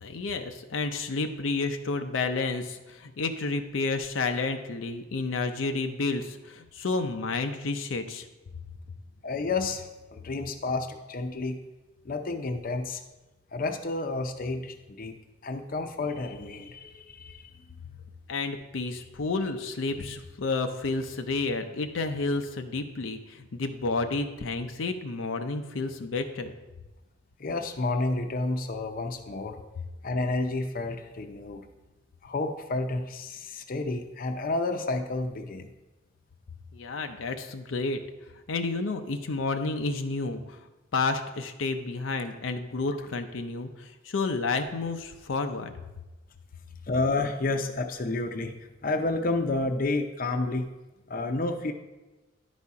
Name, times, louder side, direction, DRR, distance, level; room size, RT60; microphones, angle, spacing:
voice 1, 0.0-8.2 18.3-26.5 36.7-38.0 38.5-40.6 40.9-45.7, left 3 dB, 90° left, 6 dB, 0.6 m, -30 dB
voice 2, 9.2-11.6 12.0-13.0 13.5-15.1 15.4-17.5 27.4-29.6 30.0-31.6 32.2-35.7 46.9-48.5 48.8-50.6 51.1-51.7, left 2 dB, 45° left, 6 dB, 0.6 m, -30 dB
11.0 x 4.2 x 4.7 m, 1.1 s
head